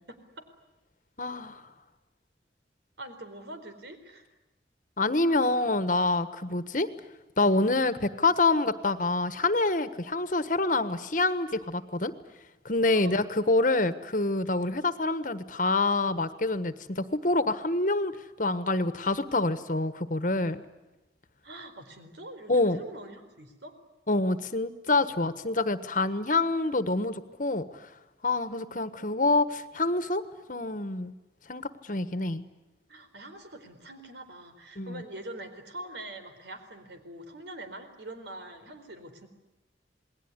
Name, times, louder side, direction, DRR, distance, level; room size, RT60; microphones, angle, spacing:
voice 1, 0.1-0.4 3.0-4.3 12.9-13.2 21.4-23.7 32.9-39.3, right 1 dB, 80° right, 8 dB, 4.3 m, -44 dB
voice 2, 1.2-1.6 5.0-6.9 7.4-12.1 12.6-20.6 22.5-22.8 24.1-27.9 28.2-30.2 30.5-31.1 31.5-32.4 34.8-35.0, left 2 dB, 45° left, 12 dB, 1.4 m, -26 dB
28.5 x 20.5 x 9.7 m, 1.0 s
head